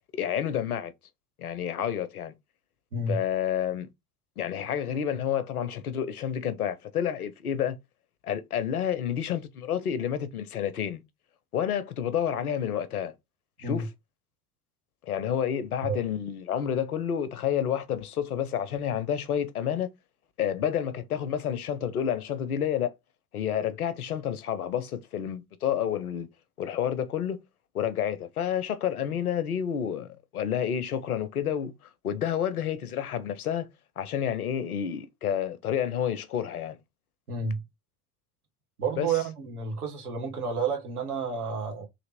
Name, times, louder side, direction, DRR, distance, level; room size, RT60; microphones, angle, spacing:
voice 1, 0.1-0.9 1.4-2.3 3.1-3.9 4.4-7.8 8.2-11.0 11.5-13.1 13.6-13.9 15.0-19.9 20.4-22.9 23.3-26.3 26.6-27.4 27.7-31.7 32.0-33.7 34.0-36.8 39.0-39.1, left 9 dB, 85° left, 0.6 m, -29 dB
voice 2, 37.3-37.6 38.8-41.9, right 4 dB, 85° right, 1.2 m, -30 dB
3.3 x 2.8 x 4.1 m
figure-of-eight pair, 65°, 43 cm